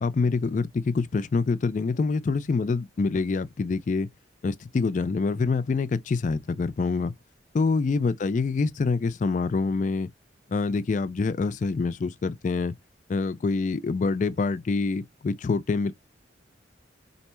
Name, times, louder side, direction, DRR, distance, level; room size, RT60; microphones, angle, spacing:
voice 1, 0.0-4.1 4.4-7.1 7.5-10.1 10.5-12.7 13.1-15.9, left 4 dB, 40° left, 0.3 m, -26 dB
4.0 x 3.3 x 3.0 m
head